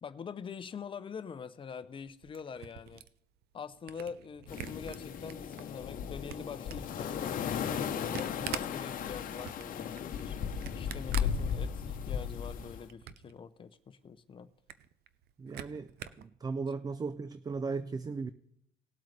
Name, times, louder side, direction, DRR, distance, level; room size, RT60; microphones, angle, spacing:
voice 1, 0.0-3.0 3.5-10.4 10.8-14.5, left 6 dB, 30° left, 0.6 m, -44 dB
Camera, 2.0-5.6 6.0-12.1 12.5-13.4 13.7-13.8 14.1-14.2 14.5-16.3, right 11 dB, 70° right, 0.6 m, -45 dB
sound 1, 4.5-12.8, left 7 dB, 55° left, 0.9 m, -36 dB
voice 2, 15.4-18.3, right 4 dB, 25° right, 0.4 m, -37 dB
19.0 x 8.0 x 3.3 m
cardioid pair, 110°, 17 cm